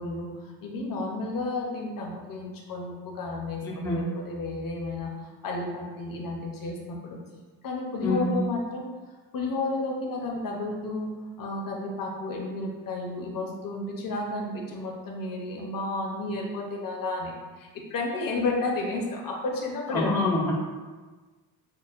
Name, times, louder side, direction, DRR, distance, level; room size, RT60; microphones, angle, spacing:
voice 1, 0.0-7.2 7.6-8.9 9.3-11.1 11.4-20.1, left 2 dB, 50° left, 0 dB, 0.7 m, -32 dB
voice 2, 3.6-4.1 8.0-8.3 19.9-20.5, left 2 dB, 5° left, -4 dB, 0.3 m, -26 dB
6.2 x 2.1 x 2.4 m, 1.3 s
wide cardioid pair, 160°, 44 cm